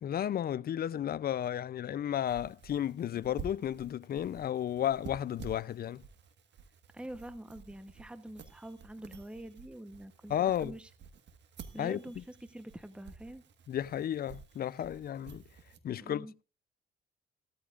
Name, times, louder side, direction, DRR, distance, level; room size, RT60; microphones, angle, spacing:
voice 1, 0.0-6.0 10.3-10.7 11.8-12.0 13.7-15.4 15.8-16.4, left 10 dB, 50° left, 0.5 m, -33 dB
sound 1, 2.2-15.8, right 6 dB, 65° right, 1.5 m, -51 dB
voice 2, 6.9-10.3 10.6-10.9 11.7-13.4 16.0-16.3, right 1 dB, 5° right, 0.9 m, -46 dB
15.5 x 13.5 x 2.5 m
cardioid pair, 90°, 20 cm